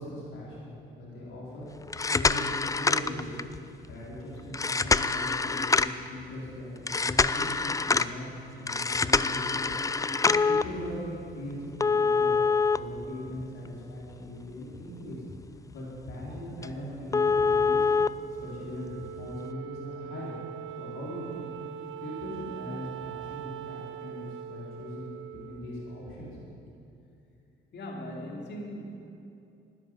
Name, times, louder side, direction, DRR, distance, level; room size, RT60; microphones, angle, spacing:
voice 1, 0.0-1.7 2.1-3.4 3.9-9.7 10.2-12.4 12.7-15.2 15.7-17.9 18.3-20.3 20.8-21.5 22.0-26.5, left 1 dB, 80° left, -6 dB, 4.4 m, -40 dB
sound 1, 1.8-3.6 4.5-6.1 6.9-8.1 8.7-10.6 11.8-13.7 14.1-14.2 14.7-14.8 15.3-15.4 15.7-15.8 16.2-16.3 16.6-16.7 17.1-18.1 19.2-19.3, left 4 dB, 15° left, 0.4 m, -25 dB
Wind instrument woodwind instrument, 18.2-26.7, right 11 dB, 80° right, 0.6 m, -42 dB
voice 2, 27.7-29.1, equal, 60° left, 1 dB, 2.8 m, -39 dB
12.5 x 10.5 x 9.3 m, 2.7 s
cardioid pair, 90°, 20 cm